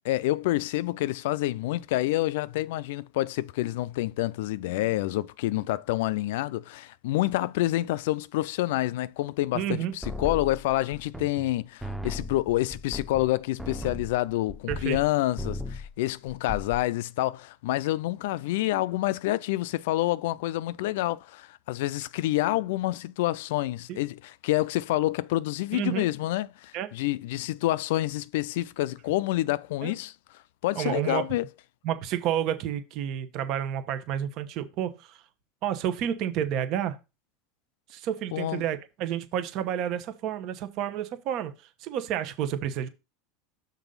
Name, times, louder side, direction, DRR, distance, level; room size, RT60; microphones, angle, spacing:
voice 1, 0.1-30.1 30.6-31.5 38.3-38.6, left 16 dB, 75° left, 0.4 m, -28 dB
voice 2, 9.5-9.9 14.7-15.0 23.9-24.0 25.7-26.1 26.7-26.9 29.8-29.9 30.7-31.3 31.8-35.2 35.6-37.0 37.9-41.5 41.8-42.9, right 10 dB, 55° right, 1.0 m, -30 dB
sound 1, 10.0-11.5 11.8-15.1 15.4-15.9 16.3-16.8, left 2 dB, 5° right, 0.7 m, -36 dB
6.1 x 4.0 x 5.4 m
hypercardioid pair, 95°, 0 cm